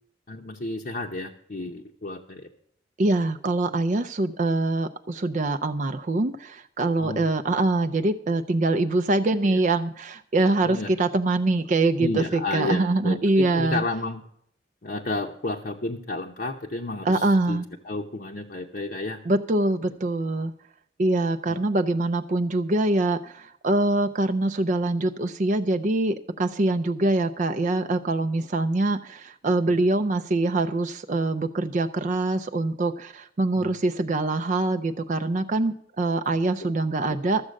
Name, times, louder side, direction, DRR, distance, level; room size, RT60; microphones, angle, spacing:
voice 1, 0.3-2.5 7.0-7.3 9.4-9.6 10.6-10.9 12.0-14.2 14.8-19.2 21.5-21.6 29.7-29.8 33.5-33.7 36.6-36.7 37.1-37.2, left 2 dB, 50° left, 1 dB, 0.8 m, -32 dB
voice 2, 3.0-13.8 17.0-17.7 19.3-20.5 21.0-37.4, right 2 dB, 40° right, 7 dB, 0.5 m, -24 dB
13.5 x 7.4 x 6.3 m, 0.72 s
head